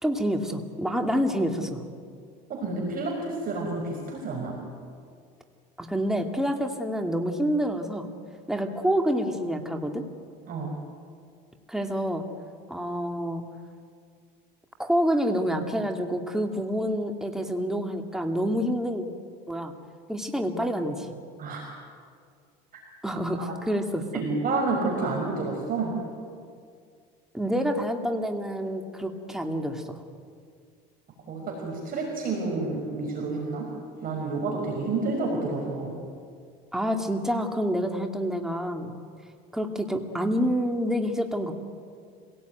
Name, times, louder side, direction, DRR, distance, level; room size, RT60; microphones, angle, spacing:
voice 1, 0.0-1.8 5.8-8.1 8.5-10.0 11.7-12.2 12.7-13.4 14.8-19.1 19.5-19.7 20.1-21.1 23.0-24.1 27.3-30.0 36.7-38.9 39.5-41.5, equal, ahead, 4 dB, 2.2 m, -27 dB
voice 2, 2.5-4.6 10.5-10.7 21.4-21.6 23.4-23.5 24.1-26.0 31.3-33.7 34.0-36.0, right 3 dB, 45° right, -1 dB, 5.4 m, -29 dB
26.0 x 17.5 x 9.3 m, 2.2 s
cardioid pair, 110°, 20 cm